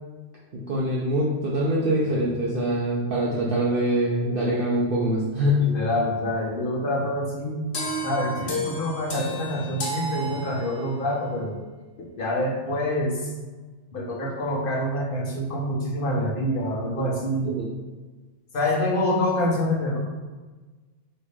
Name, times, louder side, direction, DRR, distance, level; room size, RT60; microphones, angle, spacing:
voice 1, 0.5-5.6 17.4-17.7, right 1 dB, 55° right, -5 dB, 0.8 m, -24 dB
voice 2, 5.6-7.6 8.0-11.5 12.0-13.3 13.9-17.5 18.5-20.0, left 1 dB, 50° left, -3 dB, 1.1 m, -26 dB
sound 1, 7.7-11.0, equal, 85° left, 1.2 m, -32 dB
4.0 x 3.3 x 3.3 m, 1.3 s
omnidirectional pair, 1.2 m